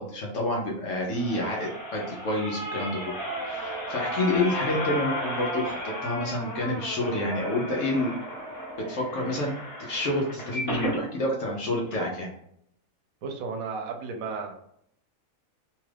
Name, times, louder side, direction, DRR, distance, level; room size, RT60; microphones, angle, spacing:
voice 1, 0.0-3.1 3.5-8.1 8.9-9.5 9.8-12.3, left 1 dB, 65° left, -2 dB, 1.0 m, -28 dB
sound 1, 0.9-11.0 11.5-11.6 11.9-12.0, equal, 15° left, 1.0 m, -34 dB
voice 2, 13.2-14.5, right 5 dB, 75° right, 3 dB, 1.0 m, -33 dB
2.9 x 2.3 x 3.2 m, 0.72 s
omnidirectional pair, 1.5 m